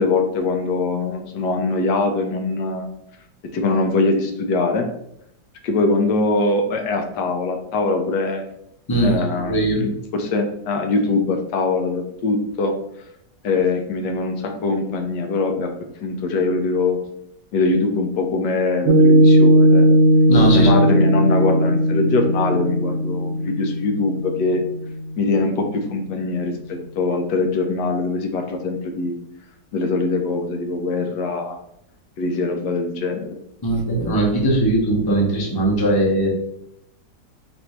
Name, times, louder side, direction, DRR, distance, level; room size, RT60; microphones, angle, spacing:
voice 1, 0.0-2.9 3.5-4.9 5.6-8.4 9.0-12.7 13.4-15.7 16.0-17.0 17.5-19.9 20.5-24.6 25.2-29.2 29.7-31.6 32.2-33.3, left 3 dB, 75° left, 4 dB, 1.2 m, -22 dB
voice 2, 8.9-9.8 20.3-20.7 33.6-36.3, right 1 dB, 20° left, -2 dB, 0.6 m, -19 dB
Piano, 18.9-25.5, right 1 dB, 85° right, 1.2 m, -17 dB
4.2 x 2.6 x 4.3 m, 0.76 s
omnidirectional pair, 1.9 m